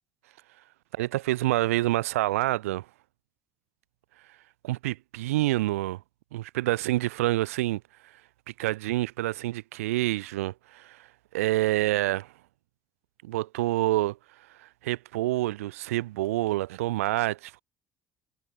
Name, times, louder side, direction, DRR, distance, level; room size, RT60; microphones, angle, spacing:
voice 1, 0.9-2.8 4.6-6.0 6.3-7.8 8.6-11.1 11.3-12.2 13.2-14.2 14.6-17.6, right 17 dB, 85° right, 6.0 m, -27 dB
hypercardioid pair, 55°, 7 cm